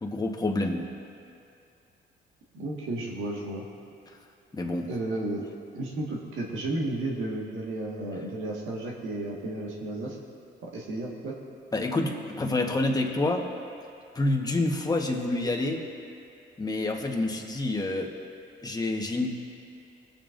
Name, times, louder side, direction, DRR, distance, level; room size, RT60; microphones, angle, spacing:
voice 1, 0.0-0.9 4.5-4.9 11.7-13.5 14.1-15.8 16.6-18.2 18.6-19.3, left 2 dB, 20° left, 1 dB, 1.2 m, -28 dB
voice 2, 2.5-3.6 4.9-5.4 5.7-10.2 10.6-11.3, right 2 dB, 85° right, -3 dB, 1.7 m, -33 dB
21.0 x 7.3 x 2.6 m, 2.6 s
cardioid pair, 90°, 20 cm